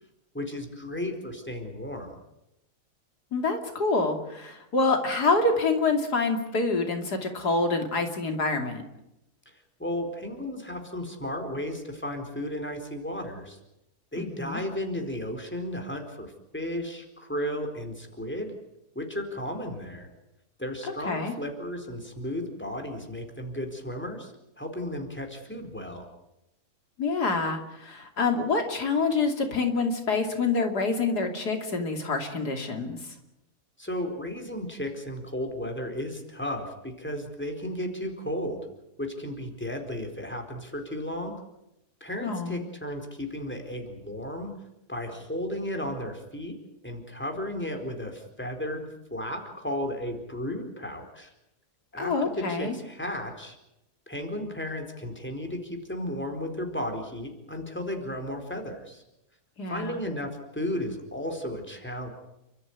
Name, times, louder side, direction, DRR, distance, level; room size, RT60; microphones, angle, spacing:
voice 1, 0.3-2.1 9.8-13.6 14.1-18.5 18.9-20.1 20.6-26.1 33.8-38.6 39.0-41.4 42.0-44.5 44.9-46.6 46.8-51.3 51.9-53.6 54.1-59.0 59.7-62.1, left 1 dB, 5° left, 4 dB, 4.3 m, -34 dB
voice 2, 3.3-8.8 14.2-14.6 21.1-21.3 27.0-33.0 42.2-42.6 52.0-52.8 59.6-60.0, left 3 dB, 90° left, 5 dB, 3.3 m, -26 dB
30.0 x 13.5 x 9.6 m, 0.89 s
omnidirectional pair, 1.7 m